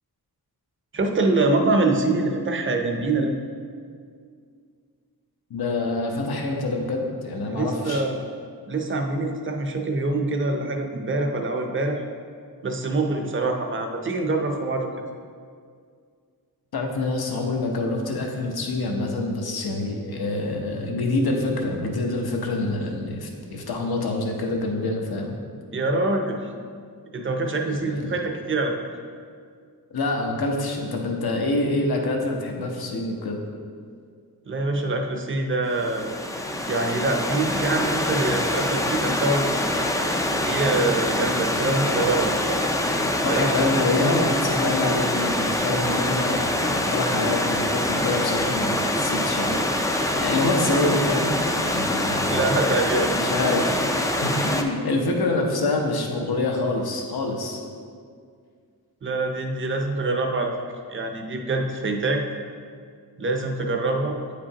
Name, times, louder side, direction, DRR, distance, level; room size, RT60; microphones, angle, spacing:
voice 1, 0.9-3.3 7.5-8.2 8.7-12.0 12.6-14.9 25.7-26.4 27.1-28.8 34.5-36.2 36.7-39.5 40.4-42.7 43.3-43.7 52.3-53.1 59.0-60.5 60.9-62.2 63.2-64.2, right 2 dB, 35° right, 3 dB, 0.6 m, -25 dB
voice 2, 5.5-8.0 16.7-25.4 27.7-28.1 29.9-33.4 43.2-52.5 53.1-57.6, left 2 dB, 75° left, 1 dB, 0.9 m, -26 dB
Stream / Liquid, 35.7-54.6, left 1 dB, 10° left, 0.3 m, -24 dB
9.1 x 5.0 x 2.9 m, 2.1 s
wide cardioid pair, 145°, 37 cm